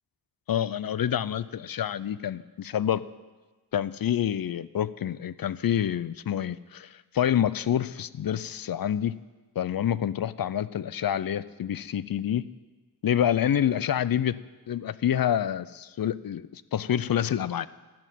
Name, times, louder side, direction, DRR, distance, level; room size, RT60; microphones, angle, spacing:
voice 1, 0.5-3.0 3.7-9.2 9.6-12.5 13.0-14.4 14.7-17.7, left 10 dB, 60° left, 17 dB, 0.5 m, -27 dB
15.5 x 6.2 x 9.2 m, 1.3 s
wide cardioid pair, 65°, 40 cm